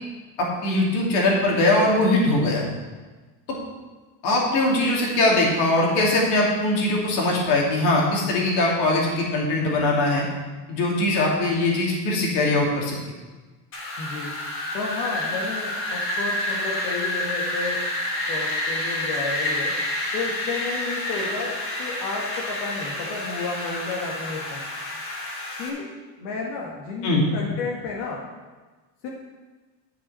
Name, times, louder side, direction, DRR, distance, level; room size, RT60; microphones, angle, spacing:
voice 1, 0.4-2.6 3.5-3.6 4.2-10.3 10.7-13.0 27.0-27.3, left 2 dB, 60° left, -2 dB, 2.7 m, -21 dB
Wind, 13.7-25.7, left 1 dB, 25° left, 1.4 m, -29 dB
voice 2, 14.0-14.3 14.7-17.8 18.3-19.7 20.1-24.6 25.6-25.9 26.2-28.2 29.0-29.1, left 4 dB, 85° left, -2 dB, 2.0 m, -32 dB
11.0 x 6.2 x 5.6 m, 1.3 s
cardioid pair, 175°, 48 cm